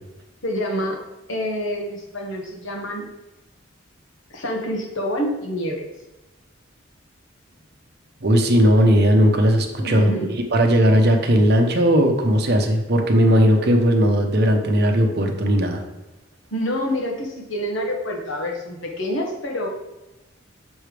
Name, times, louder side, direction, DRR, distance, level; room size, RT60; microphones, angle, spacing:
voice 1, 0.4-1.0 1.3-3.1 4.3-5.9 9.8-10.3 16.5-19.7, equal, 75° left, 0 dB, 1.3 m, -27 dB
voice 2, 8.2-10.1 10.5-15.8, equal, 50° right, 3 dB, 0.8 m, -17 dB
7.0 x 3.3 x 5.0 m, 1.0 s
head